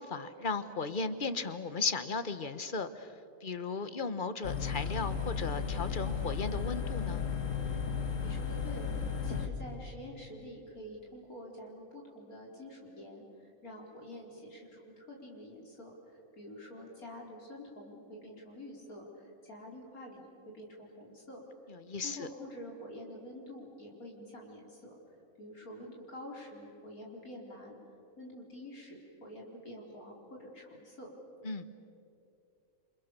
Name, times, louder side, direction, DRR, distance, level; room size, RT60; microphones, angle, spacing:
voice 1, 0.0-3.1 3.4-7.2 21.7-22.3 31.4-31.6, left 4 dB, 40° left, 11 dB, 1.2 m, -36 dB
sound 1, 4.4-9.5, left 6 dB, 60° left, 1.8 m, -34 dB
voice 2, 8.2-8.9 9.2-13.2 13.6-15.9 16.3-20.3 20.5-21.5 22.0-25.0 25.4-27.8 28.2-31.1, left 1 dB, 85° left, -1 dB, 4.9 m, -47 dB
28.5 x 27.5 x 6.8 m, 2.6 s
omnidirectional pair, 1.5 m